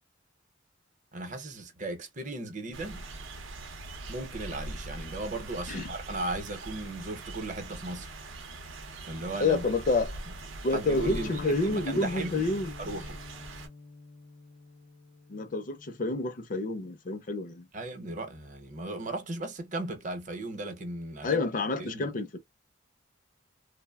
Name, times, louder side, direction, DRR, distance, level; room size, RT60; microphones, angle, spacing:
voice 1, 1.1-3.1 4.1-8.1 9.0-9.6 10.7-12.5 12.8-13.2 17.7-21.4 21.8-22.1, right 2 dB, 40° right, 0.7 m, -36 dB
sound 1, 2.7-13.7, right 2 dB, 80° right, 0.6 m, -42 dB
voice 2, 9.4-10.2 10.6-12.7 15.3-17.7 21.2-22.4, left 3 dB, 40° left, 0.4 m, -29 dB
sound 2, 10.9-16.1, left 4 dB, 85° left, 0.6 m, -45 dB
3.0 x 2.0 x 2.2 m
head